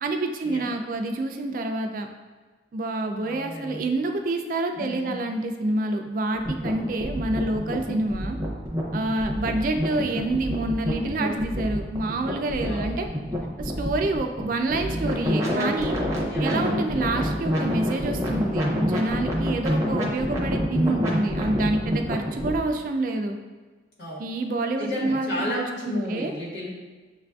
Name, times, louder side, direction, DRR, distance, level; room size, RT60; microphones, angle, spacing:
voice 1, 0.0-2.1 2.7-8.4 8.9-13.1 13.6-16.0 16.4-23.4 24.2-26.3, right 2 dB, 50° right, 5 dB, 0.3 m, -27 dB
voice 2, 3.2-3.9 4.7-5.2 12.6-13.0 13.7-13.8 16.2-16.5 24.0-24.3 24.8-26.7, left 1 dB, 70° left, -6 dB, 1.4 m, -33 dB
sound 1, 6.3-22.6, equal, 20° right, 0.6 m, -27 dB
6.8 x 2.4 x 2.3 m, 1.3 s
head